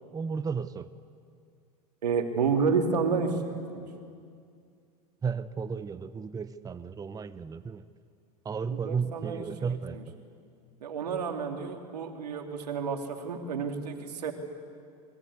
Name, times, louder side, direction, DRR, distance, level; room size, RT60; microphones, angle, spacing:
voice 1, 0.1-0.9 5.2-7.8 8.4-10.2, right 5 dB, 20° right, 13 dB, 0.8 m, -33 dB
voice 2, 2.0-3.4 3.7-3.9 8.7-9.4 9.9-10.0 10.8-14.3, right 5 dB, 85° right, 4 dB, 2.8 m, -30 dB
26.0 x 21.5 x 8.4 m, 2.3 s
hypercardioid pair, 90°, 20 cm